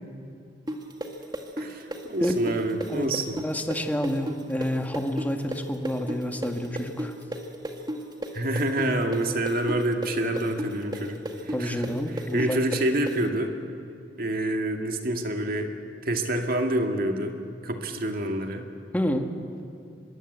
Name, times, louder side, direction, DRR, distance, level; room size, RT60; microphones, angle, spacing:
sound 1, 0.7-8.3 8.6-13.2, right 1 dB, 25° right, 1.9 m, -33 dB
voice 1, 1.6-3.4 8.3-13.6 14.2-15.7 16.0-18.7, right 1 dB, 55° right, 4 dB, 2.2 m, -27 dB
voice 2, 3.4-7.1 11.5-12.6 18.9-19.3, equal, 10° left, 4 dB, 1.7 m, -28 dB
25.0 x 22.0 x 8.1 m, 2.5 s
head